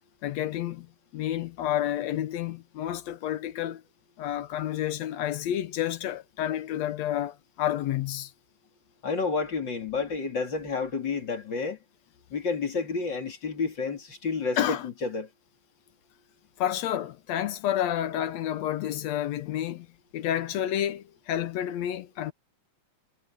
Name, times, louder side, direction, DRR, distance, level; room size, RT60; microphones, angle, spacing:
voice 1, 0.2-3.8 4.2-8.3 14.6-14.9 16.6-19.9 20.1-22.3, left 11 dB, 75° left, 2.0 m, -30 dB
voice 2, 9.0-11.8 12.3-15.3, left 4 dB, 40° left, 3.3 m, -30 dB
omnidirectional pair, 3.4 m